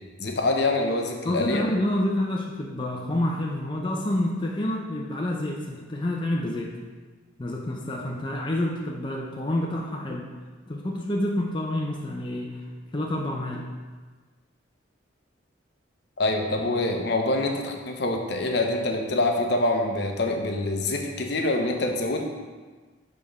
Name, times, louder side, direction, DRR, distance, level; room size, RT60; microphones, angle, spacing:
voice 1, 0.2-1.7 16.2-22.2, left 2 dB, 60° left, 3 dB, 0.7 m, -25 dB
voice 2, 1.2-6.7 7.4-10.3 10.7-12.6 12.9-13.6, left 1 dB, 25° left, -2 dB, 0.5 m, -28 dB
6.7 x 3.6 x 5.2 m, 1.4 s
head